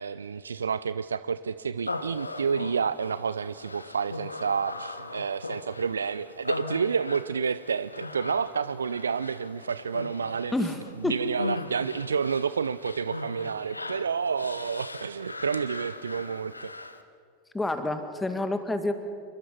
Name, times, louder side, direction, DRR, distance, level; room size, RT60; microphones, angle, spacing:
voice 1, 0.0-10.5 11.0-16.7, right 6 dB, 75° right, 15 dB, 0.5 m, -29 dB
Human voice, 1.8-17.0, left 2 dB, 85° left, 1.1 m, -39 dB
voice 2, 10.5-11.2 17.5-18.9, left 2 dB, 10° left, 7 dB, 2.1 m, -28 dB
27.5 x 23.0 x 5.9 m, 2.3 s
figure-of-eight pair, 85°, 0 cm